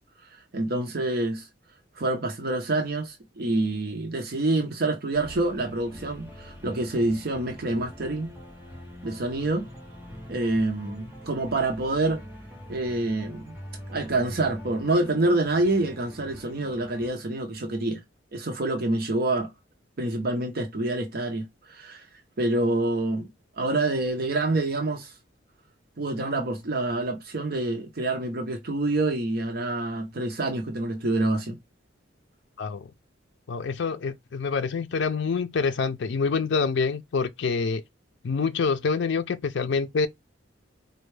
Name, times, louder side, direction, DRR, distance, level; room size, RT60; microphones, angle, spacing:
voice 1, 0.5-1.5 2.0-8.3 9.0-9.7 10.3-12.2 12.7-13.6 13.9-18.0 18.3-19.5 20.0-22.1 22.4-23.3 23.6-25.1 26.0-31.6, right 2 dB, 55° right, 0.6 m, -27 dB
sound 1, 5.1-17.1, equal, 10° right, 1.4 m, -44 dB
voice 2, 32.6-32.9 33.5-37.8 38.2-40.1, left 5 dB, 65° left, 0.4 m, -26 dB
4.3 x 2.2 x 3.2 m
head